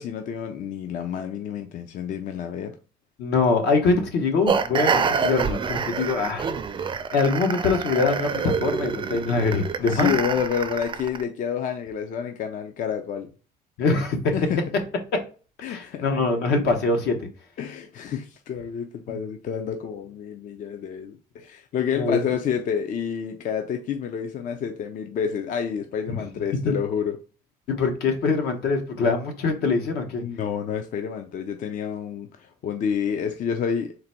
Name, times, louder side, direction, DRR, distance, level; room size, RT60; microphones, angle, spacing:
voice 1, 0.0-2.7 5.9-6.0 9.8-13.3 14.3-14.7 15.6-16.1 17.6-27.2 30.2-34.0, left 7 dB, 50° left, 0.4 m, -29 dB
voice 2, 3.2-6.5 7.1-10.1 13.8-14.3 15.7-17.2 21.9-22.2 26.6-26.7 27.7-30.2, left 4 dB, 75° left, 1.0 m, -23 dB
sound 1, 4.5-11.2, right 6 dB, 30° right, 0.4 m, -27 dB
3.9 x 2.2 x 4.2 m
cardioid pair, 110°, 17 cm